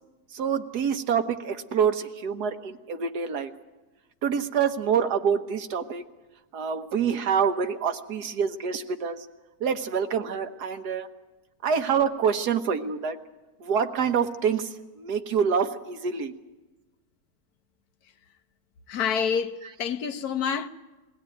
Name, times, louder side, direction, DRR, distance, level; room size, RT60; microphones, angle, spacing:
voice 1, 0.3-3.5 4.2-6.0 6.5-9.3 9.6-11.1 11.6-13.2 13.6-16.3, right 7 dB, 90° right, 1.7 m, -26 dB
voice 2, 18.9-20.7, left 7 dB, 75° left, 1.4 m, -27 dB
22.0 x 16.5 x 9.1 m
omnidirectional pair, 1.6 m